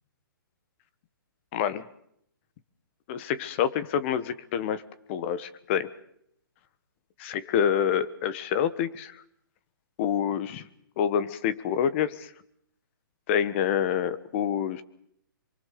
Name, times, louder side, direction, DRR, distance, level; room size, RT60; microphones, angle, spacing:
voice 1, 1.5-1.8 3.1-4.8 5.1-5.9 7.2-9.2 10.0-10.7 11.0-12.3 13.3-14.8, left 8 dB, 35° left, 14 dB, 1.4 m, -27 dB
25.0 x 24.0 x 6.9 m, 0.71 s
hypercardioid pair, 155°, 12 cm